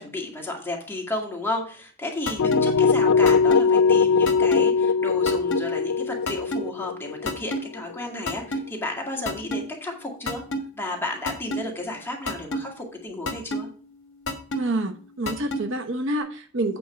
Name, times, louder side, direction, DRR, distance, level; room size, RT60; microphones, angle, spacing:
voice 1, 0.0-10.4 10.8-13.7, left 2 dB, 10° left, 0 dB, 2.0 m, -32 dB
sound 1, 2.3-2.6 3.3-3.6 4.3-4.6 5.3-5.6 6.3-6.6 7.3-7.6 8.3-8.6 9.3-9.6 10.3-10.6 11.3-11.6 12.3-12.6 13.3-13.6 14.3-14.6 15.3-15.6, equal, 60° left, 1.5 m, -27 dB
sound 2, 2.4-8.2, left 5 dB, 85° left, 0.4 m, -21 dB
voice 2, 14.5-16.8, right 1 dB, 60° right, 6 dB, 1.0 m, -27 dB
8.6 x 4.6 x 5.7 m, 0.42 s
head